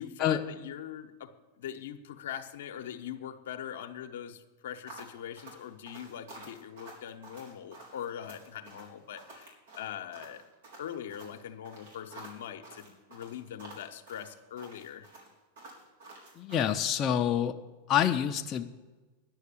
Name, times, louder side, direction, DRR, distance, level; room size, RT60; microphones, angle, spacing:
voice 1, 0.0-10.4 10.8-15.1, left 9 dB, 75° left, 6 dB, 0.9 m, -42 dB
sound 1, 4.9-16.8, right 2 dB, 80° right, 4.0 m, -50 dB
voice 2, 16.4-17.5 17.9-18.7, left 9 dB, 35° left, 4 dB, 0.6 m, -27 dB
10.5 x 6.5 x 8.5 m, 1.2 s
hypercardioid pair, 110°, 0 cm